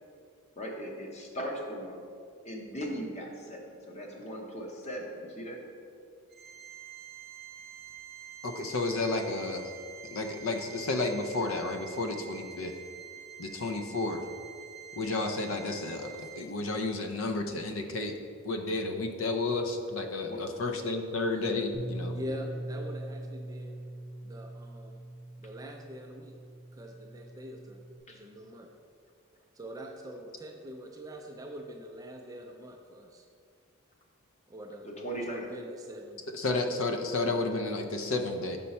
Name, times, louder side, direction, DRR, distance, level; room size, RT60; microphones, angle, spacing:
voice 1, 0.6-2.0 2.4-5.6 20.3-20.4 28.1-28.2 34.8-35.4, equal, 30° left, 1 dB, 0.8 m, -38 dB
Organ, 6.3-16.9, right 9 dB, 40° right, 0.7 m, -48 dB
voice 2, 8.4-9.7 10.1-12.8 13.4-14.2 14.9-18.2 18.4-22.1 36.3-38.6, left 2 dB, 65° left, 5 dB, 0.5 m, -32 dB
Bass guitar, 21.7-28.0, right 1 dB, ahead, 0.7 m, -42 dB
voice 3, 22.1-23.8 24.2-25.0 25.4-26.4 26.7-27.8 28.1-28.7 29.5-33.3 34.5-36.2 36.5-37.1, equal, 15° right, 2 dB, 0.3 m, -44 dB
5.6 x 5.4 x 4.2 m, 2.3 s
head